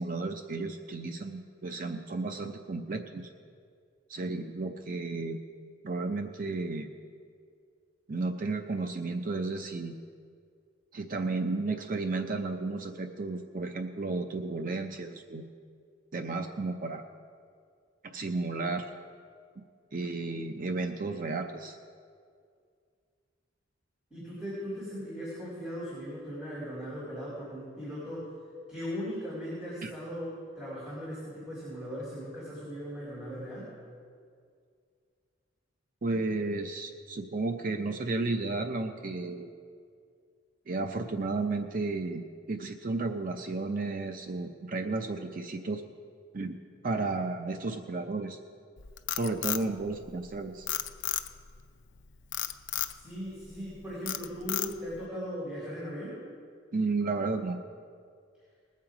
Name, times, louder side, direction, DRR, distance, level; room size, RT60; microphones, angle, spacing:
voice 1, 0.0-3.3 4.1-5.4 5.8-6.9 8.1-10.0 10.9-15.5 16.1-17.0 18.0-18.9 19.9-21.8 29.8-29.9 36.0-39.5 40.7-42.2 42.5-45.8 46.3-46.6 46.8-48.4 49.1-50.7 56.7-57.6, right 3 dB, 45° right, 6 dB, 0.6 m, -33 dB
voice 2, 24.1-28.3 28.7-33.7 53.0-56.2, equal, 5° right, -10 dB, 4.1 m, -38 dB
Frog, 48.8-50.3 50.7-51.5 52.3-53.0 53.5-53.7 54.1-55.0, left 12 dB, 70° left, 0.5 m, -32 dB
20.5 x 7.5 x 4.8 m, 2.2 s
head